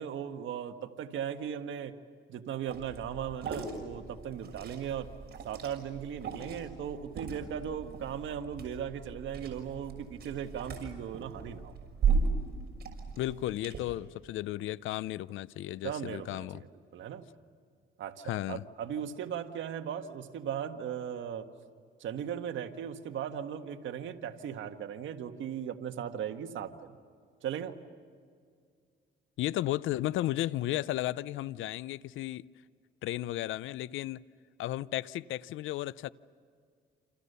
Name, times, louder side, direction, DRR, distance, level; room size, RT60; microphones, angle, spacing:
voice 1, 0.0-2.0 2.3-5.1 5.4-11.7 15.8-16.7 16.9-17.3 18.0-21.5 22.0-27.0 27.4-27.7, right 8 dB, 75° right, 1.7 m, -37 dB
Liquid, 2.7-13.8, right 5 dB, 55° right, 6.3 m, -36 dB
voice 2, 13.2-16.6 18.2-18.6 29.4-32.5 33.0-34.2 34.6-36.1, left 14 dB, 80° left, 0.6 m, -34 dB
28.5 x 28.0 x 6.8 m
cardioid pair, 90°, 20 cm